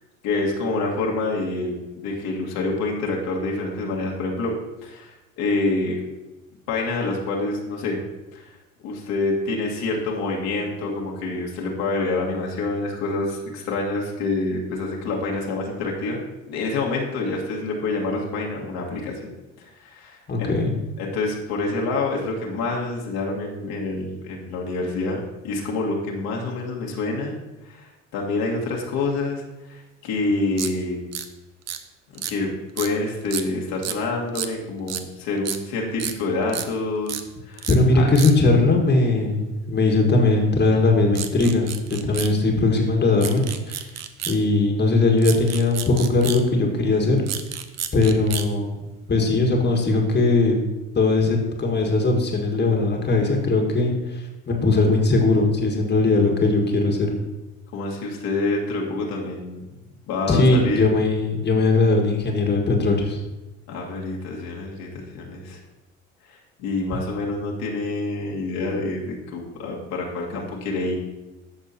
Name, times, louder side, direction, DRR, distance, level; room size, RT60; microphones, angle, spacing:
voice 1, 0.2-4.5 4.8-6.0 6.7-8.0 8.3-8.5 8.8-16.2 16.5-19.3 19.6-20.5 21.0-25.2 25.4-27.4 27.6-31.0 32.1-37.7 37.9-38.1 57.7-59.6 60.1-60.9 63.7-65.6 66.3-71.0, left 3 dB, 60° left, -2 dB, 1.9 m, -27 dB
voice 2, 20.3-20.7 37.7-41.7 42.0-43.9 44.3-47.2 47.9-48.8 49.1-50.6 51.0-57.1 60.3-63.2, left 3 dB, 25° left, 1 dB, 1.7 m, -19 dB
sound 1, 30.6-30.7 31.1-31.3 31.7-31.8 32.1-32.3 32.8-32.9 33.3-33.5 33.8-34.0 34.4-34.5 34.9-35.0 35.5-35.6 36.0-36.1 36.5-36.7 37.1-37.2 37.6-37.8 38.2-38.3 41.2-42.3 43.2-44.4 45.2-46.4 47.2-48.5, right 9 dB, 40° right, 0.8 m, -30 dB
14.5 x 6.2 x 2.9 m, 1.0 s
hypercardioid pair, 60°, 39 cm